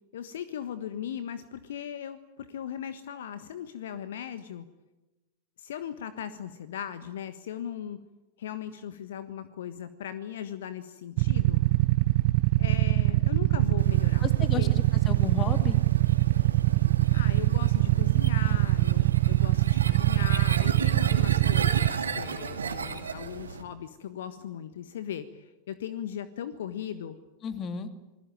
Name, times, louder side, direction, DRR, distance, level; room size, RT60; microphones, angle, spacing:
voice 1, 0.1-4.6 5.6-8.0 8.4-11.6 12.6-14.7 17.1-27.2, left 9 dB, 60° left, 12 dB, 1.3 m, -38 dB
Motorcycle / Idling, 11.2-21.9, right 20 dB, 45° right, 0.9 m, -23 dB
sound 1, 13.8-23.6, right 5 dB, 70° right, 2.7 m, -36 dB
voice 2, 14.2-15.8 27.4-27.9, left 6 dB, 30° left, 9 dB, 2.5 m, -33 dB
28.0 x 20.5 x 9.1 m, 1.1 s
figure-of-eight pair, 90°, 0 cm